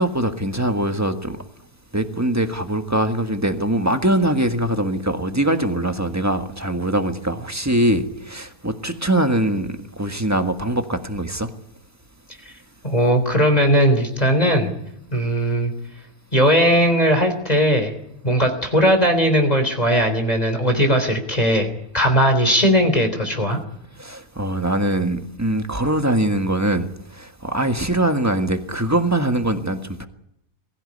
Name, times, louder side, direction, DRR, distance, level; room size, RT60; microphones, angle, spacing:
voice 1, 0.0-1.4 1.9-11.5 24.0-30.1, right 1 dB, 10° right, 1.5 m, -22 dB
voice 2, 12.8-14.7 15.1-15.7 16.3-17.9 18.2-23.6, equal, 25° left, 3.7 m, -18 dB
22.5 x 15.5 x 9.9 m
omnidirectional pair, 1.5 m